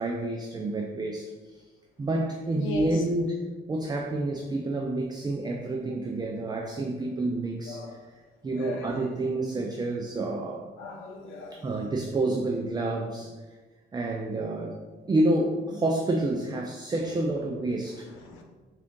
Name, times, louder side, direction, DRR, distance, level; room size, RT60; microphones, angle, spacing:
voice 1, 0.0-1.6 2.0-3.4 3.7-8.0 8.4-10.7 11.5-13.3 13.9-14.8 15.1-18.2, right 2 dB, 20° right, 1 dB, 0.4 m, -29 dB
voice 2, 2.6-2.9 7.7-7.9 8.5-8.9 10.8-11.5 18.2-18.4, left 3 dB, 90° left, 2 dB, 0.6 m, -37 dB
3.6 x 2.5 x 3.6 m, 1.3 s
cardioid pair, 90°, 20 cm